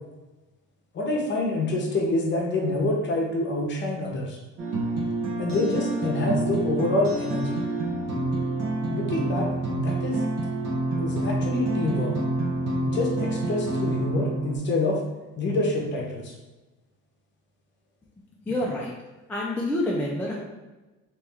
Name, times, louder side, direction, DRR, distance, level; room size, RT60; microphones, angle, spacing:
voice 1, 0.9-4.4 5.4-7.6 8.9-9.5 9.8-10.2 11.0-12.1 12.9-15.0 15.4-16.3, left 2 dB, 35° left, -1 dB, 0.8 m, -26 dB
sound 1, 4.6-14.6, right 2 dB, 55° right, 0.9 m, -28 dB
voice 2, 18.3-18.9 19.3-20.4, left 1 dB, 5° left, -4 dB, 0.3 m, -27 dB
3.3 x 3.0 x 3.4 m, 1.1 s
cardioid pair, 165°, 31 cm